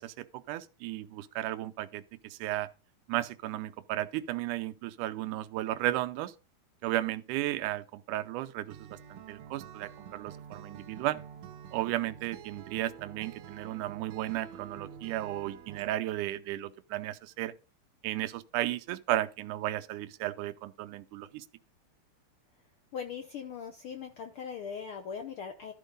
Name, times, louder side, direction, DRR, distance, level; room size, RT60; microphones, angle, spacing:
voice 1, 0.0-2.7 3.1-6.3 6.8-11.2 11.7-17.5 18.0-21.5, right 15 dB, 90° right, 2.2 m, -34 dB
Acoustic guitar, 8.7-15.9, right 8 dB, 75° right, 1.7 m, -48 dB
voice 2, 22.9-25.7, left 7 dB, 75° left, 1.2 m, -40 dB
12.5 x 4.5 x 5.2 m
omnidirectional pair, 3.5 m